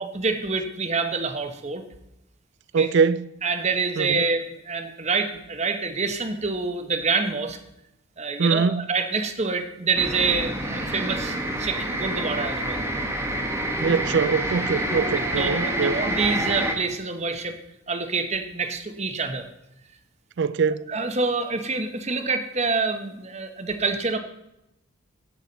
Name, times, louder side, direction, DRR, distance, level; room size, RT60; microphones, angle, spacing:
voice 1, 0.0-1.8 2.8-2.9 3.4-7.6 8.2-12.9 15.4-17.5 17.9-19.5 20.9-24.2, right 4 dB, 30° right, 1.0 m, -26 dB
voice 2, 2.7-3.3 4.0-4.2 8.4-8.9 13.8-16.0 20.4-20.9, right 5 dB, 50° right, 0.4 m, -23 dB
sound 1, 10.0-16.7, right 1 dB, 10° right, 1.4 m, -27 dB
16.0 x 6.2 x 4.0 m
head